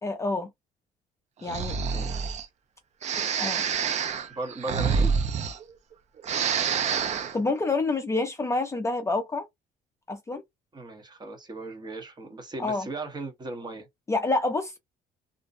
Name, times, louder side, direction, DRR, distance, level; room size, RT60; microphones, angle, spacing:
voice 1, 0.0-0.5 1.4-2.1 3.4-3.7 7.3-9.5 10.1-10.4 12.6-12.9 14.1-14.8, left 3 dB, 15° left, 0.4 m, -28 dB
Breathing, 1.4-2.5 3.0-5.9 6.2-7.4, right 6 dB, 45° right, 0.4 m, -27 dB
voice 2, 1.9-2.4 4.3-5.2 10.7-13.9, right 2 dB, 25° right, 0.8 m, -37 dB
2.5 x 2.1 x 2.5 m
cardioid pair, 110°, 17 cm